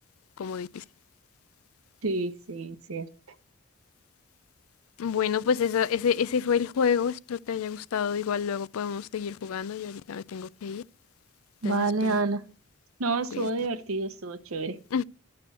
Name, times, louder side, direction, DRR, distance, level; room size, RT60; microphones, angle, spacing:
voice 1, 0.4-0.8 5.0-10.8 11.6-12.2 13.3-13.5 14.9-15.0, left 7 dB, 80° left, 0.4 m, -28 dB
voice 2, 2.0-3.1 11.6-12.4 13.0-14.8, right 3 dB, 75° right, 0.9 m, -29 dB
11.5 x 7.7 x 4.1 m
head